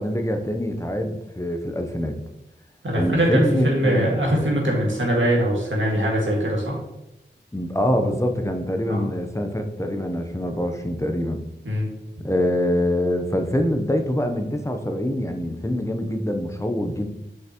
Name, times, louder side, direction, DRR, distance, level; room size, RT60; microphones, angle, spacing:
voice 1, 0.0-2.2 3.0-4.1 7.5-11.4 12.2-17.1, left 1 dB, 15° left, 5 dB, 0.7 m, -24 dB
voice 2, 2.8-6.8 8.9-9.1 11.7-11.9, equal, 80° right, -2 dB, 1.8 m, -22 dB
6.2 x 5.6 x 2.9 m, 0.89 s
wide cardioid pair, 60°, 20 cm